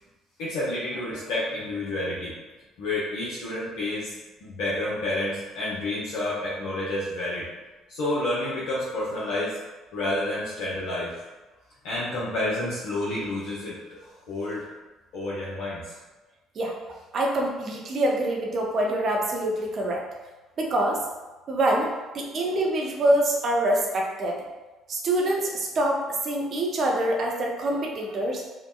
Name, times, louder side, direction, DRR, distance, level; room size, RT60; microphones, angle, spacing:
voice 1, 0.4-2.3 2.8-4.1 4.4-7.5 7.9-9.6 9.9-11.1 11.8-14.0 14.3-14.7 15.1-15.8, left 1 dB, 70° left, -8 dB, 0.5 m, -29 dB
voice 2, 17.1-20.0 20.6-21.0 21.5-21.9 22.1-24.4 24.9-28.4, right 1 dB, 50° right, -1 dB, 0.5 m, -25 dB
2.8 x 2.1 x 2.3 m, 1.1 s
hypercardioid pair, 55°, 0 cm